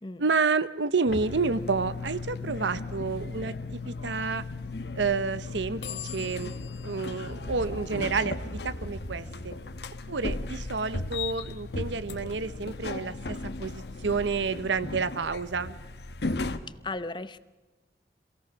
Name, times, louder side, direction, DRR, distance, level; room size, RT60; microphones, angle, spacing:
voice 1, 0.2-4.4 5.0-6.5 6.8-9.5 10.1-15.8, right 4 dB, 85° right, 14 dB, 0.8 m, -29 dB
sound 1, 1.1-16.6, left 3 dB, 65° left, 1.1 m, -36 dB
voice 2, 16.8-17.4, left 2 dB, 25° left, 14 dB, 0.7 m, -35 dB
26.0 x 17.0 x 6.0 m, 1.2 s
head